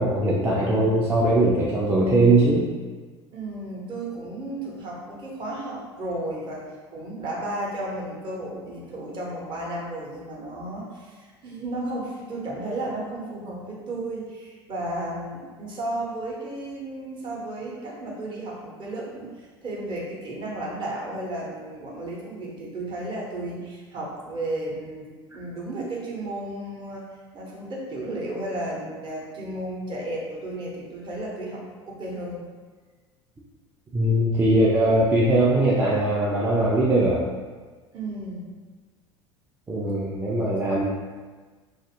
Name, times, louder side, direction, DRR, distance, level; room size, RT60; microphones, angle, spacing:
voice 1, 0.0-2.7 33.9-37.2 39.7-40.8, right 1 dB, 15° right, -6 dB, 0.4 m, -20 dB
voice 2, 3.3-6.6 6.9-32.4 37.9-38.5, right 1 dB, 30° right, -4 dB, 0.8 m, -33 dB
2.5 x 2.4 x 2.7 m, 1.4 s
figure-of-eight pair, 70°, 15 cm